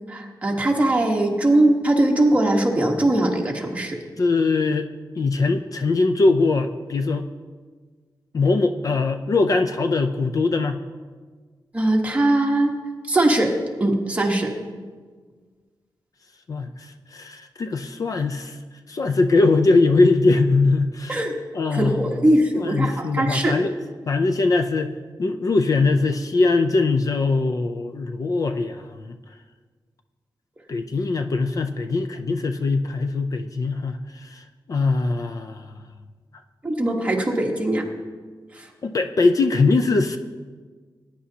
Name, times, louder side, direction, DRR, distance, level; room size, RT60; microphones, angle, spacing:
voice 1, 0.1-4.0 11.7-12.8 13.1-13.5 13.8-14.5 21.1-21.3 21.7-23.5 36.6-37.8 38.6-38.7, right 1 dB, 15° right, 0 dB, 1.3 m, -20 dB
voice 2, 4.2-4.9 5.2-7.3 8.3-10.8 16.5-18.6 18.9-21.2 21.5-22.2 22.5-23.7 24.1-24.9 25.2-29.2 30.7-35.7 38.8-40.2, left 3 dB, 45° left, 7 dB, 0.5 m, -21 dB
20.0 x 9.9 x 2.8 m, 1.5 s
wide cardioid pair, 175°, 8 cm